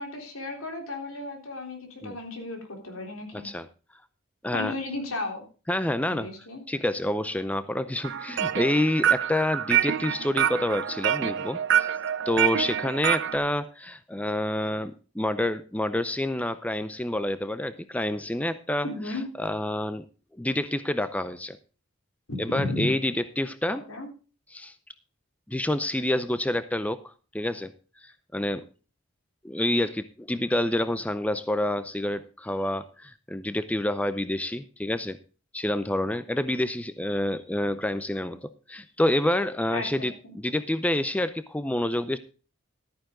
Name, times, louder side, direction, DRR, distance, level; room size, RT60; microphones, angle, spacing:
voice 1, 0.0-3.5 4.5-5.4 6.1-6.6 18.8-19.2 22.3-22.9 23.7-24.1 39.7-40.3, left 2 dB, 80° left, 3 dB, 3.7 m, -34 dB
voice 2, 3.3-3.7 4.4-4.7 5.7-6.3 6.7-11.9 12.3-18.9 19.4-20.0 20.4-21.6 22.4-23.8 24.5-24.7 25.5-27.0 27.3-27.7 28.0-28.6 29.4-35.2 35.5-42.2, left 1 dB, 5° left, 13 dB, 0.5 m, -28 dB
sound 1, 8.0-13.4, right 9 dB, 60° right, 0.6 m, -26 dB
13.0 x 9.5 x 3.8 m, 0.35 s
head